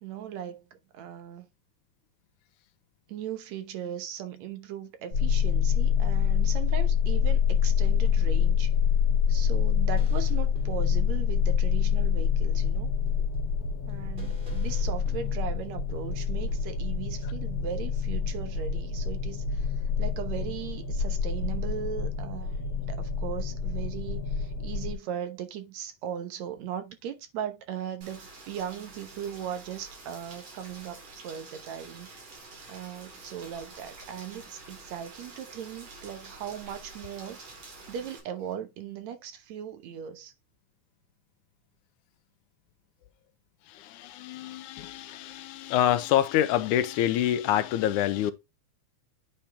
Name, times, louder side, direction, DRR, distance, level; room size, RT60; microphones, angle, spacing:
voice 1, 0.0-1.5 3.1-8.7 9.3-12.9 13.9-32.2 32.7-37.4 37.9-40.3, right 9 dB, 70° right, 2.2 m, -38 dB
sound 1, 5.1-24.9, left 7 dB, 60° left, 2.3 m, -26 dB
sound 2, 9.9-16.8, left 1 dB, 20° right, 2.3 m, -47 dB
Rain, 28.0-38.2, right 3 dB, 55° right, 3.6 m, -48 dB
voice 2, 43.7-48.3, left 11 dB, 85° left, 2.2 m, -26 dB
9.1 x 4.3 x 3.4 m
omnidirectional pair, 3.4 m